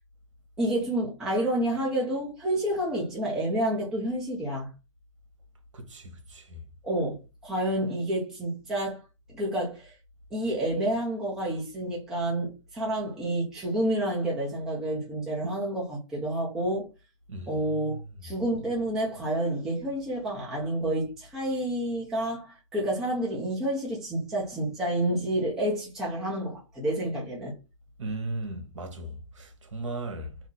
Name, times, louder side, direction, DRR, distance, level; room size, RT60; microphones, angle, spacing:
voice 1, 0.6-4.7 6.8-9.0 9.3-9.9 10.3-16.9 17.5-27.5, right 1 dB, 5° right, 0.5 m, -29 dB
voice 2, 5.7-6.6 17.3-18.1 28.0-30.4, right 2 dB, 70° right, 1.2 m, -37 dB
2.8 x 2.5 x 3.8 m
hypercardioid pair, 165°, 17 cm